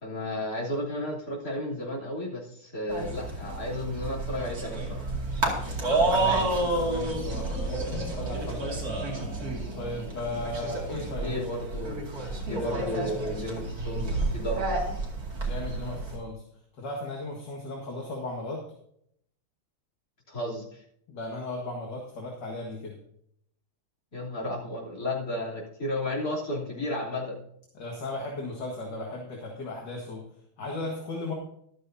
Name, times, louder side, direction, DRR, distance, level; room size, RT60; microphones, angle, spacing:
voice 1, 0.0-5.1 11.2-12.0 12.4-14.9 20.3-20.8 24.1-27.4, left 1 dB, 40° left, -5 dB, 3.8 m, -33 dB
sound 1, 2.9-16.2, right 2 dB, 45° right, 2.9 m, -30 dB
voice 2, 6.1-9.1 9.7-11.4 12.5-12.8 15.4-16.4 16.7-18.6 21.1-23.0 27.7-30.2 30.6-31.3, left 2 dB, 55° left, -1 dB, 2.4 m, -36 dB
14.0 x 12.5 x 2.8 m, 0.71 s
omnidirectional pair, 2.3 m